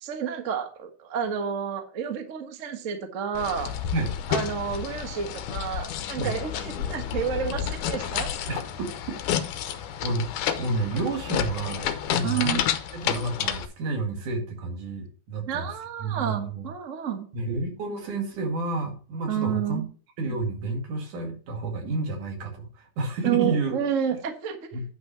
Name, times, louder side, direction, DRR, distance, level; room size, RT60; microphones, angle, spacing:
voice 1, 0.0-3.7 4.3-8.3 12.2-12.7 15.5-17.3 19.3-19.9 23.2-24.7, right 8 dB, 40° right, 6 dB, 1.1 m, -30 dB
sound 1, 3.3-13.7, left 9 dB, 90° left, 2.3 m, -30 dB
voice 2, 8.5-8.9 10.0-12.6 12.9-15.7 16.0-16.7 17.3-19.8 20.2-23.8 24.7-24.8, right 3 dB, 90° right, 3 dB, 3.8 m, -30 dB
10.0 x 5.8 x 5.6 m, 0.37 s
omnidirectional pair, 3.4 m